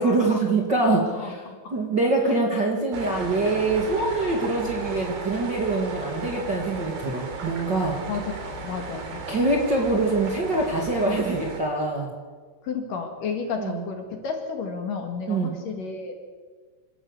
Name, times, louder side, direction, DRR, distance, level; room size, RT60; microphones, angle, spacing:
voice 1, 0.0-1.4 1.7-8.0 9.3-12.1 13.6-13.8 15.3-15.5, right 2 dB, 35° right, -2 dB, 1.9 m, -24 dB
voice 2, 1.1-1.7 8.1-9.2 12.6-16.1, left 5 dB, 55° left, 4 dB, 3.2 m, -32 dB
sound 1, 2.9-11.6, right 4 dB, 75° right, 4.9 m, -35 dB
27.0 x 13.5 x 8.2 m, 1.5 s
omnidirectional pair, 4.9 m